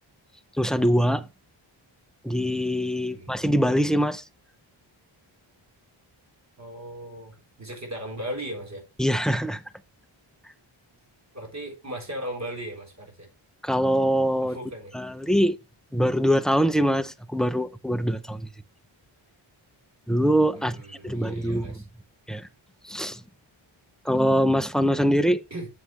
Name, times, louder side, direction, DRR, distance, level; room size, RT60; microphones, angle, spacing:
voice 1, 0.6-1.2 2.2-4.2 9.0-9.6 13.6-14.6 14.9-15.5 15.9-18.5 20.1-20.8 21.0-21.8 22.3-22.5 22.8-23.2 24.0-25.4, equal, ahead, 0.5 m, -23 dB
voice 2, 3.1-3.4 6.6-8.8 11.3-13.3 14.4-14.9 20.5-21.8 25.5-25.7, right 1 dB, 35° right, 4.0 m, -37 dB
7.7 x 6.4 x 3.2 m
cardioid pair, 75°, 49 cm